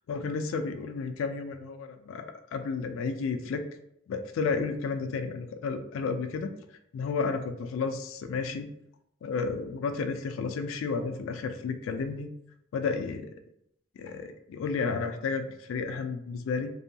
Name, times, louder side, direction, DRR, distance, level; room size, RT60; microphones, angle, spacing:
voice 1, 0.1-3.6 4.1-6.5 6.9-8.7 9.2-12.3 12.7-13.3 14.0-16.7, left 4 dB, 90° left, 8 dB, 0.3 m, -32 dB
2.7 x 2.2 x 2.6 m, 0.77 s
head